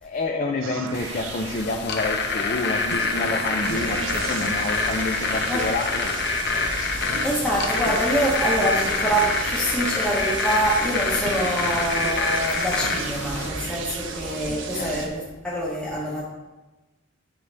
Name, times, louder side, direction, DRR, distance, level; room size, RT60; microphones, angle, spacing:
voice 1, 0.0-6.2 14.5-15.0, left 3 dB, 45° left, 3 dB, 0.5 m, -29 dB
sound 1, 0.6-2.4 2.9-6.5 7.1-10.7 11.3-14.8, right 5 dB, 85° right, 0.5 m, -37 dB
sound 2, 0.9-13.5, left 4 dB, 60° left, 1.0 m, -26 dB
sound 3, 3.6-15.1, right 3 dB, 65° right, 1.0 m, -35 dB
voice 2, 7.2-16.2, right 1 dB, 5° left, -5 dB, 1.0 m, -25 dB
10.0 x 6.3 x 3.4 m, 1.2 s
head